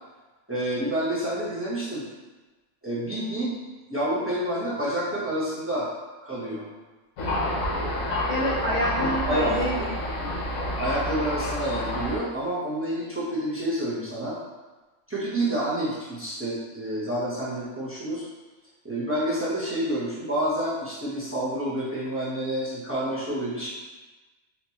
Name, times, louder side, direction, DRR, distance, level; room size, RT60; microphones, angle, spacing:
voice 1, 0.5-2.0 2.8-3.5 3.9-5.9 6.2-6.6 9.3-9.9 10.8-14.4 15.1-18.2 18.8-23.7, right 1 dB, 15° right, -8 dB, 0.6 m, -28 dB
Thunder, 7.2-12.2, left 1 dB, 85° left, 1.2 m, -28 dB
voice 2, 8.3-10.4, equal, 65° left, -5 dB, 0.4 m, -28 dB
4.3 x 2.5 x 2.8 m, 1.2 s
omnidirectional pair, 1.4 m